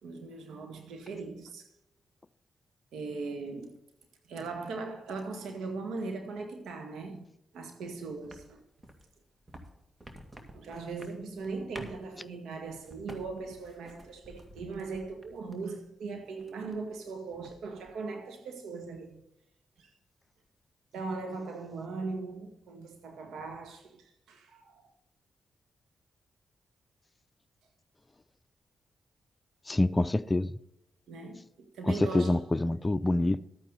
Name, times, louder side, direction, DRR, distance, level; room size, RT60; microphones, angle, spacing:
voice 1, 0.0-1.7 2.9-3.7 4.3-7.3 7.5-8.6 10.5-19.2 19.8-19.9 20.9-24.8 31.1-32.5, right 4 dB, 80° right, 1.9 m, -39 dB
sound 1, 8.2-15.8 16.1-17.0 17.3-17.9, right 1 dB, 30° right, 2.1 m, -50 dB
voice 2, 29.7-30.5 31.9-33.4, left 2 dB, 25° left, 0.6 m, -26 dB
12.5 x 9.1 x 4.1 m
supercardioid pair, 45°, 0 cm